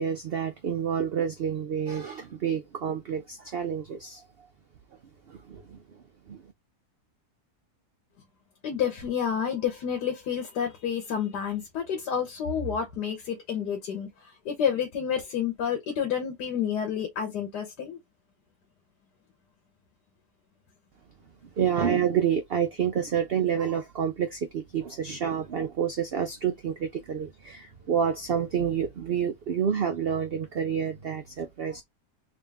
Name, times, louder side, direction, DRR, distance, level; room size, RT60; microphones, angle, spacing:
voice 1, 0.0-4.2 5.3-5.8 6.3-6.4 21.6-31.8, right 8 dB, 80° right, 0.5 m, -28 dB
voice 2, 8.6-18.0, left 8 dB, 85° left, 1.6 m, -29 dB
3.7 x 2.6 x 3.5 m
omnidirectional pair, 1.7 m